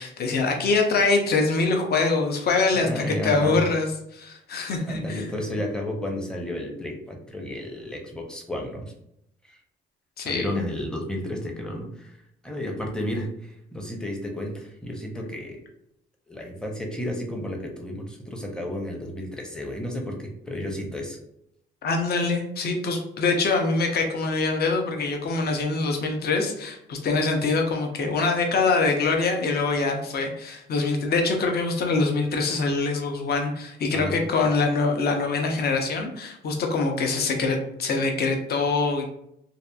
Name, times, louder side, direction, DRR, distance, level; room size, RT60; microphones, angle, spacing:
voice 1, 0.0-5.4 10.2-10.5 21.8-39.0, left 3 dB, 55° left, 3 dB, 0.6 m, -24 dB
voice 2, 2.7-3.6 4.9-8.8 9.4-9.6 10.2-12.2 12.4-15.6 16.3-21.2 33.9-34.2, left 1 dB, 5° left, 1 dB, 0.6 m, -32 dB
2.8 x 2.4 x 2.3 m, 0.77 s
cardioid pair, 90°, 20 cm